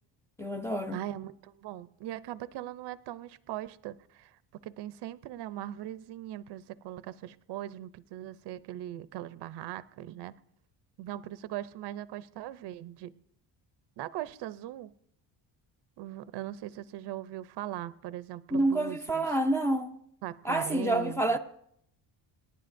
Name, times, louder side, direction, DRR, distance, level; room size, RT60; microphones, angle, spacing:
voice 1, 0.4-1.0 18.5-20.0 20.4-21.4, right 1 dB, 5° left, 0.4 m, -28 dB
voice 2, 0.9-4.4 4.6-10.3 11.0-13.1 14.0-14.9 16.0-19.3 20.2-21.4, right 13 dB, 60° right, 0.6 m, -40 dB
27.5 x 11.0 x 2.6 m
cardioid pair, 165°, 47 cm